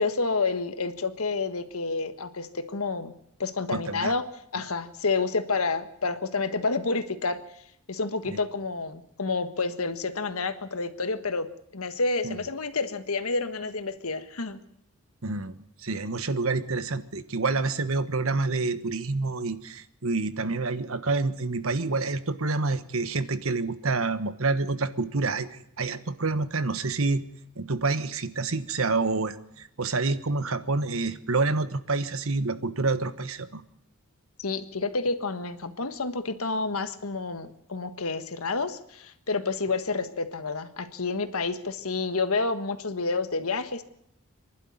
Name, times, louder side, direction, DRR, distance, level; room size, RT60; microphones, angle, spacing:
voice 1, 0.0-3.1 3.4-4.2 4.5-7.4 7.9-11.5 11.7-14.6 34.4-43.8, left 3 dB, 85° left, 10 dB, 1.5 m, -29 dB
voice 2, 3.7-4.2 8.3-8.4 12.2-12.4 15.2-27.2 27.5-33.6, right 3 dB, 75° right, 12 dB, 1.3 m, -28 dB
26.0 x 11.5 x 9.5 m, 0.75 s
head